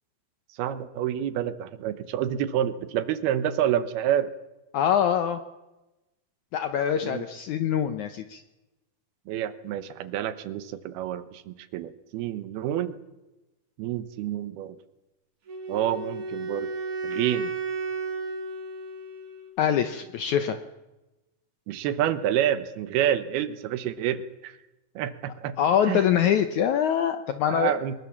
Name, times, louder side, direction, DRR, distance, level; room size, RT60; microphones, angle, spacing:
voice 1, 0.6-4.3 7.0-7.3 9.3-13.0 13.8-14.8 15.7-16.7 17.0-17.5 21.7-24.6 25.0-25.6 25.9-26.0 27.5-27.9, right 11 dB, 80° right, 12 dB, 3.0 m, -28 dB
voice 2, 4.7-5.4 6.5-8.4 19.6-20.6 25.6-27.8, left 9 dB, 75° left, 9 dB, 1.8 m, -24 dB
Wind instrument woodwind instrument, 15.5-19.6, right 4 dB, 55° right, 4.0 m, -33 dB
23.0 x 21.5 x 7.2 m, 1.0 s
omnidirectional pair, 4.5 m